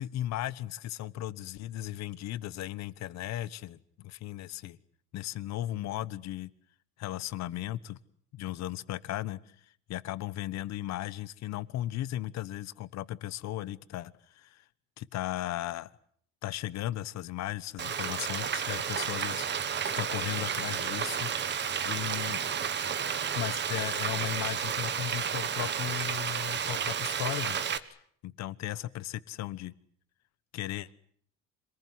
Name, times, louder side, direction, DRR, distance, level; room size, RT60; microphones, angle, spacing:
voice 1, 0.0-4.8 5.1-6.5 7.0-8.0 8.3-9.4 9.9-14.6 15.0-15.9 16.4-21.3 21.8-22.4 23.3-27.6 28.2-29.7 30.5-30.9, left 14 dB, 55° left, 17 dB, 1.2 m, -36 dB
Frying (food), 17.8-27.8, right 7 dB, 35° right, 1.5 m, -32 dB
26.5 x 20.0 x 9.6 m, 0.64 s
cardioid pair, 145°, 33 cm